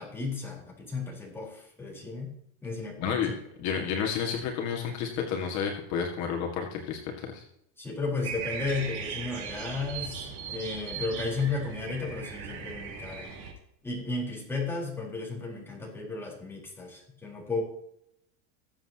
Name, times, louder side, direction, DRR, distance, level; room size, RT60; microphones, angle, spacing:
voice 1, 0.0-2.3 2.6-3.4 7.8-13.3 13.8-17.6, left 3 dB, 5° left, -3 dB, 4.3 m, -34 dB
voice 2, 3.0-3.3 3.6-7.0 7.3-7.4, left 7 dB, 50° left, 1 dB, 2.1 m, -30 dB
sound 1, 8.2-13.5, right 6 dB, 50° right, 4.0 m, -38 dB
20.5 x 7.9 x 2.9 m, 0.74 s
supercardioid pair, 145°, 36 cm